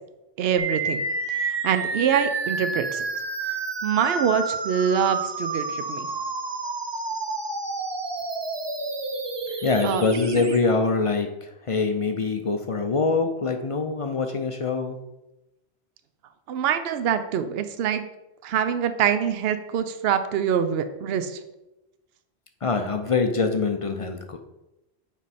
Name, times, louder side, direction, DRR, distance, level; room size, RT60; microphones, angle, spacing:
voice 1, 0.4-1.0 1.3-3.0 3.8-6.1 9.8-10.0 16.5-18.0 18.4-21.4, right 8 dB, 75° right, 10 dB, 0.8 m, -24 dB
sound 1, 0.6-10.6, right 3 dB, 30° right, 0.5 m, -30 dB
voice 2, 9.6-15.0 22.6-24.4, left 4 dB, 45° left, 6 dB, 0.4 m, -24 dB
8.9 x 3.3 x 4.1 m, 0.96 s
omnidirectional pair, 1.0 m